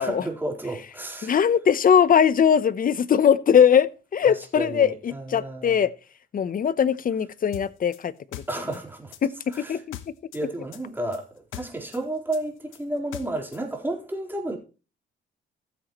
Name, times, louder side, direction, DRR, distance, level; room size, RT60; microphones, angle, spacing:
voice 1, 0.0-1.3 4.3-5.9 6.8-6.9 8.5-9.1 9.5-9.8 10.3-14.6, right 1 dB, 10° right, 4.0 m, -32 dB
voice 2, 1.2-5.9 6.3-8.4 9.2-10.0, left 8 dB, 45° left, 0.8 m, -21 dB
sound 1, 7.5-10.4 10.7-13.6, left 13 dB, 85° left, 1.1 m, -41 dB
14.5 x 7.7 x 3.0 m
cardioid pair, 90°, 20 cm